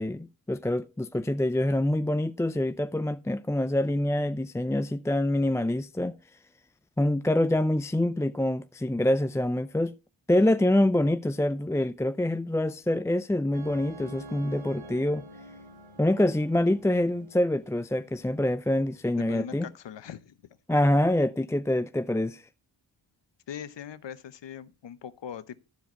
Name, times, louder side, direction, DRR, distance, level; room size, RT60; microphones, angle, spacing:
voice 1, 0.0-6.2 7.0-10.0 10.3-15.2 16.0-19.7 20.7-22.5, left 1 dB, 5° left, 0.4 m, -26 dB
sound 1, 13.5-19.7, right 2 dB, 85° right, 2.2 m, -48 dB
voice 2, 19.2-20.4 23.5-25.6, left 8 dB, 65° left, 0.9 m, -41 dB
13.5 x 4.8 x 4.4 m
cardioid pair, 45°, 46 cm